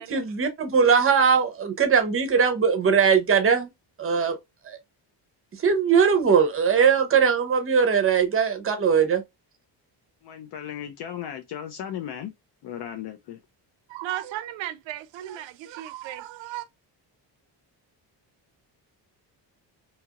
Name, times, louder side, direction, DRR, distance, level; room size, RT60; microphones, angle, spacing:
voice 1, 0.0-3.7 4.0-4.4 4.6-4.8 5.6-9.2, right 6 dB, 30° right, 0.6 m, -20 dB
voice 2, 10.2-12.3 12.6-13.4, left 10 dB, 65° left, 0.5 m, -36 dB
voice 3, 13.9-16.7, right 13 dB, 80° right, 0.5 m, -35 dB
2.8 x 2.3 x 2.8 m
cardioid pair, 165°, 44 cm